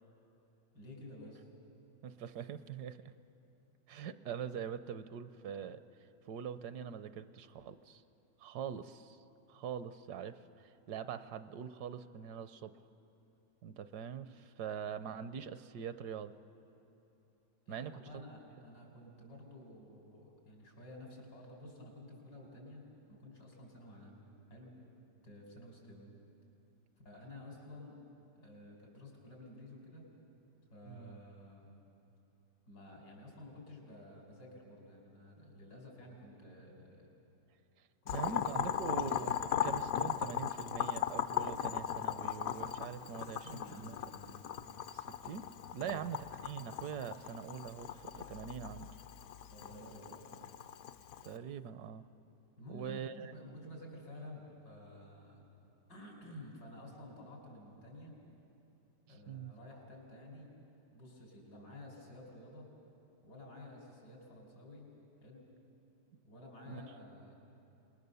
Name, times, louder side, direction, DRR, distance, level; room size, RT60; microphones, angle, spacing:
voice 1, 0.7-1.5 17.7-22.8 23.1-24.7 25.2-26.1 27.0-28.0 28.4-30.0 30.7-31.7 32.7-37.1 38.0-38.9 43.2-44.4 45.7-46.0 49.5-50.2 52.6-55.4 55.9-58.1 59.1-60.6 60.9-62.7 63.2-64.9 65.2-65.5 66.2-67.3, left 1 dB, 90° left, -1 dB, 5.3 m, -52 dB
voice 2, 2.0-3.1 3.9-5.8 6.3-8.0 8.4-9.2 9.5-12.7 13.6-16.3 17.7-18.0 30.9-31.2 38.1-39.3 39.6-43.9 44.9-45.5 45.7-48.9 51.2-52.0 52.7-53.3 59.3-59.5 66.7-66.8, right 8 dB, 70° right, 12 dB, 1.2 m, -43 dB
Boiling, 38.1-51.3, left 9 dB, 65° left, 1.0 m, -38 dB
27.0 x 20.5 x 6.9 m, 2.9 s
omnidirectional pair, 1.8 m